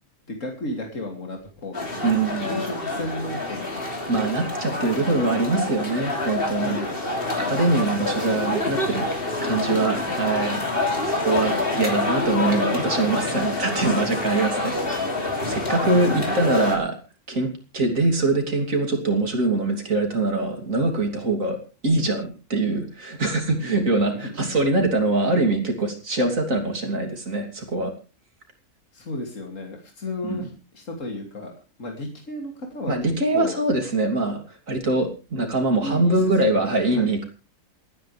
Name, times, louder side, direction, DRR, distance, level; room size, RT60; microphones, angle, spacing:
voice 1, 0.3-1.9 2.4-3.8 4.8-5.4 6.5-7.0 9.4-10.5 15.9-16.4 23.6-24.3 28.9-31.5 31.8-33.6 35.8-36.1 36.4-37.2, left 2 dB, 75° left, 2 dB, 3.2 m, -34 dB
sound 1, 1.7-16.8, left 2 dB, 45° left, 3.4 m, -27 dB
voice 2, 2.0-2.6 4.1-6.8 7.4-9.1 9.4-10.6 11.0-15.1 15.5-17.0 17.3-21.6 21.8-27.9 30.2-30.5 32.9-37.2, right 2 dB, 85° right, 4 dB, 3.5 m, -23 dB
28.0 x 10.0 x 3.4 m, 0.33 s
omnidirectional pair, 1.3 m